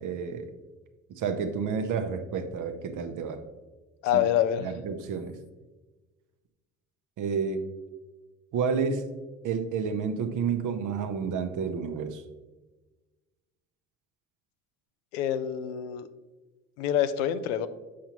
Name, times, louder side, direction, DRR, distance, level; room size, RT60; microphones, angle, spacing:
voice 1, 0.0-0.5 1.1-3.4 4.1-4.2 4.6-5.4 7.2-7.7 8.5-9.1 9.4-12.2, right 6 dB, 55° right, 8 dB, 0.8 m, -30 dB
voice 2, 4.0-4.7 15.1-16.1 16.8-17.7, left 10 dB, 80° left, 12 dB, 0.5 m, -26 dB
7.4 x 5.7 x 2.9 m, 1.2 s
hypercardioid pair, 55°, 36 cm